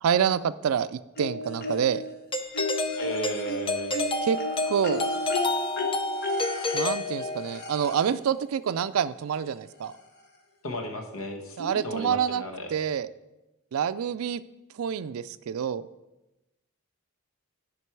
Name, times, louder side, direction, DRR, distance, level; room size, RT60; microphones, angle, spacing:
voice 1, 0.0-2.0 4.2-4.4 4.7-5.0 6.7-9.9 11.6-12.4 12.7-13.1 13.7-14.4 14.8-15.8, right 8 dB, 75° right, 15 dB, 0.4 m, -27 dB
sound 1, 1.2-2.1 2.5-8.2 9.4-9.5 9.9-10.0, left 2 dB, 45° left, 1.0 m, -33 dB
Doorbell, 2.3-7.7, left 2 dB, 25° left, 0.5 m, -30 dB
voice 2, 2.9-3.9 10.6-12.7, equal, 70° left, 4 dB, 1.2 m, -34 dB
11.5 x 5.3 x 4.6 m, 1.0 s
head